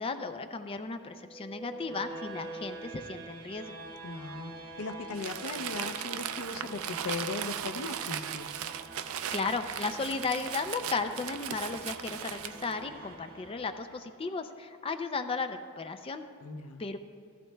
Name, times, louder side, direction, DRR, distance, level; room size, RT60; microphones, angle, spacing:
voice 1, 0.0-3.7 9.3-16.2 16.8-17.0, left 4 dB, 25° left, 8 dB, 0.4 m, -35 dB
sound 1, 1.2-14.2, right 2 dB, 85° right, 1.9 m, -46 dB
voice 2, 4.0-8.5 16.4-16.8, left 3 dB, 90° left, 8 dB, 0.6 m, -38 dB
Crumpling crinkling, 5.1-12.7, right 10 dB, 70° right, 0.4 m, -38 dB
15.5 x 12.0 x 2.2 m, 2.1 s
head